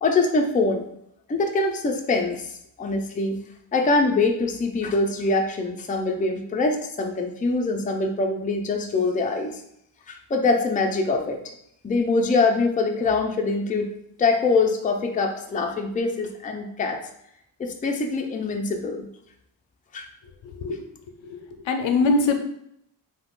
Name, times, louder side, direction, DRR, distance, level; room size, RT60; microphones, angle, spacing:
voice 1, 0.0-0.9 1.3-2.4 2.8-3.4 3.7-9.6 10.1-11.4 11.8-13.9 14.2-17.0 17.6-19.1 19.9-20.1, left 3 dB, 20° left, 3 dB, 0.4 m, -23 dB
voice 2, 21.3-22.3, left 3 dB, 70° left, 5 dB, 0.6 m, -22 dB
2.8 x 2.3 x 3.5 m, 0.74 s
cardioid pair, 60°, 48 cm